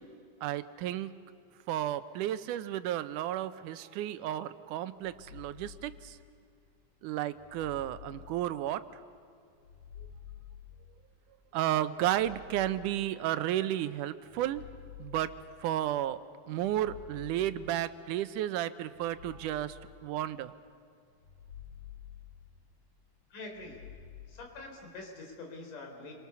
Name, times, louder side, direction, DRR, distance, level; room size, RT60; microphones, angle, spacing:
voice 1, 0.4-1.1 1.7-5.9 7.0-8.8 11.5-14.6 15.0-15.3 15.6-16.2 16.5-19.7 20.0-20.5, right 12 dB, 85° right, 13 dB, 2.3 m, -32 dB
sound 1, 4.9-6.5 7.3-9.0 9.5-11.3 11.9-13.5 14.2-15.9 16.5-18.1 18.9-20.5 21.1-22.9 23.4-24.3, left 9 dB, 60° left, 7.2 m, -51 dB
voice 2, 23.3-23.8 24.3-26.1, left 2 dB, 90° left, 2 dB, 5.4 m, -45 dB
29.5 x 24.0 x 7.0 m, 2.3 s
omnidirectional pair, 3.6 m